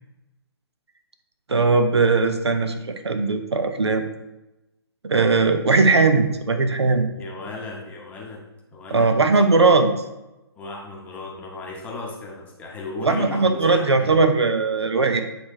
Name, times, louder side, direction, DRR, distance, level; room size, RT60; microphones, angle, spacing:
voice 1, 1.5-4.0 5.0-7.1 8.9-9.9 13.0-15.2, right 3 dB, 75° right, 7 dB, 0.7 m, -19 dB
voice 2, 7.2-8.4 8.7-9.1 10.6-14.2, left 2 dB, 10° left, -2 dB, 0.9 m, -35 dB
8.1 x 3.2 x 3.6 m, 1.0 s
figure-of-eight pair, 135°, 14 cm